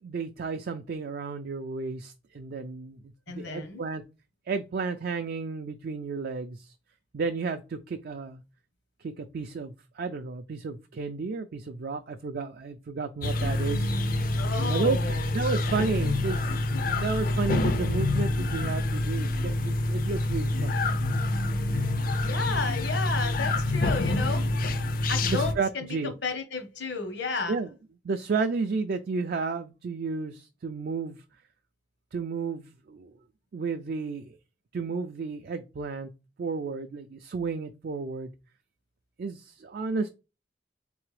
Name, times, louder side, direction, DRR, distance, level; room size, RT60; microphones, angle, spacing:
voice 1, 0.0-4.0 4.5-6.7 7.1-8.4 9.0-13.9 14.7-20.8 21.7-21.9 25.3-26.1 27.5-27.7 28.0-31.2 32.1-33.1 33.5-34.3 34.7-36.1 36.4-38.3 39.2-40.1, right 4 dB, 55° right, 0.4 m, -32 dB
voice 2, 3.3-3.8 14.4-15.3 22.2-24.5 25.1-27.6, left 4 dB, 70° left, 1.0 m, -32 dB
sound 1, 13.2-25.5, left 2 dB, 50° left, 0.5 m, -27 dB
4.0 x 3.4 x 3.2 m
head